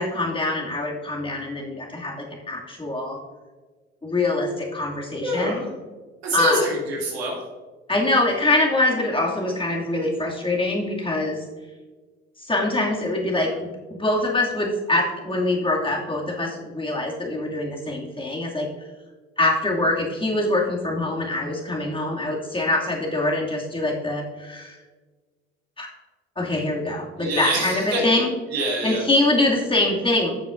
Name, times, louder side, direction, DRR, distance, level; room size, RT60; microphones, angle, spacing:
voice 1, 0.0-3.2 4.0-5.7 6.3-6.6 7.9-11.4 12.4-13.6 14.0-18.7 19.4-24.8 25.8-25.9 26.4-28.3 28.8-30.3, left 2 dB, 15° left, -2 dB, 2.4 m, -24 dB
voice 2, 5.2-5.7 6.2-7.4 27.2-28.2 28.5-29.0, right 1 dB, 90° right, -2 dB, 2.4 m, -25 dB
13.5 x 6.8 x 2.6 m, 1.4 s
hypercardioid pair, 60°, 30 cm